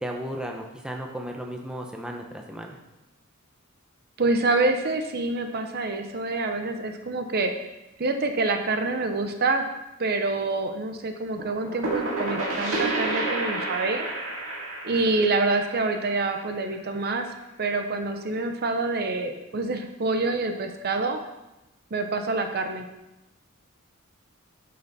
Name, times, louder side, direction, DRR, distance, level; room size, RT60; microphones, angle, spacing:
voice 1, 0.0-2.8, equal, 5° right, 1 dB, 0.7 m, -35 dB
voice 2, 4.2-7.5 8.0-9.6 10.0-14.1 14.8-17.3 17.6-21.2 21.9-22.8, right 3 dB, 45° right, 6 dB, 0.7 m, -26 dB
sound 1, 11.4-17.0, right 2 dB, 75° right, 2.1 m, -30 dB
8.9 x 6.7 x 4.1 m, 0.98 s
head